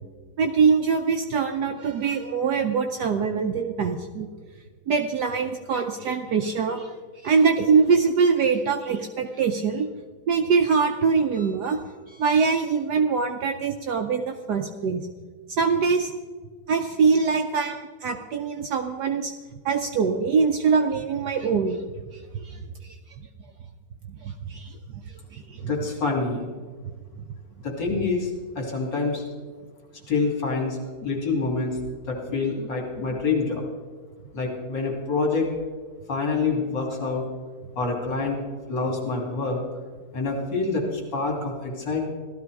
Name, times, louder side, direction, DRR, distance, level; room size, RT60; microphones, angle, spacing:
voice 1, 0.4-4.3 4.9-6.9 7.2-9.9 10.3-11.8 12.1-15.0 15.5-16.1 16.7-19.3 19.6-21.8 22.1-22.9 24.2-24.7 25.3-25.7, right 5 dB, 65° right, 5 dB, 1.1 m, -23 dB
voice 2, 25.6-26.5 27.6-28.3 28.5-29.2 30.1-31.8 32.1-33.6 34.3-35.5 36.1-37.2 37.8-38.4 38.7-39.6 40.1-42.1, left 4 dB, 60° left, 0 dB, 3.3 m, -26 dB
15.5 x 13.0 x 4.7 m, 1.5 s
omnidirectional pair, 2.3 m